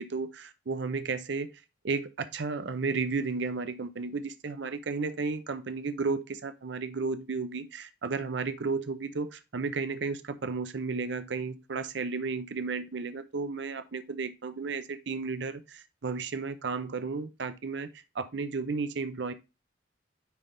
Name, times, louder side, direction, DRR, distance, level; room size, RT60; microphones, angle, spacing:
voice 1, 0.0-1.5 1.8-17.9 18.1-19.3, right 4 dB, 65° right, 0.6 m, -33 dB
9.8 x 3.4 x 3.8 m
head